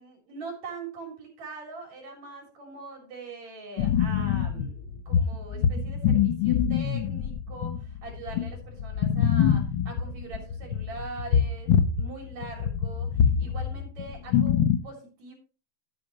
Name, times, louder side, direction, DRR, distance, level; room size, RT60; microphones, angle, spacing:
voice 1, 0.0-15.3, right 3 dB, 70° right, 2 dB, 4.8 m, -42 dB
sound 1, 3.8-12.1 12.3-14.8, left 8 dB, 90° left, 1.0 m, -25 dB
12.0 x 10.5 x 3.1 m, 0.33 s
omnidirectional pair, 3.3 m